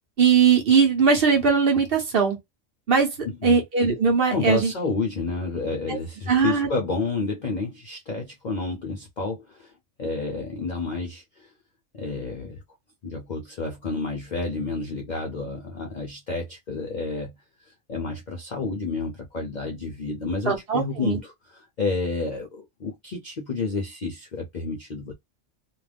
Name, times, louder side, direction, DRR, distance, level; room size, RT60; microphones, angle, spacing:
voice 1, 0.2-2.4 2.9-3.1 3.4-4.7 5.9-6.0 6.3-6.7 20.5-21.2, right 6 dB, 50° right, 0.9 m, -20 dB
voice 2, 3.2-3.6 4.3-9.7 10.0-11.5 11.9-12.6 13.0-17.3 17.6-25.1, left 3 dB, 55° left, 0.5 m, -30 dB
2.5 x 2.2 x 3.3 m
omnidirectional pair, 1.4 m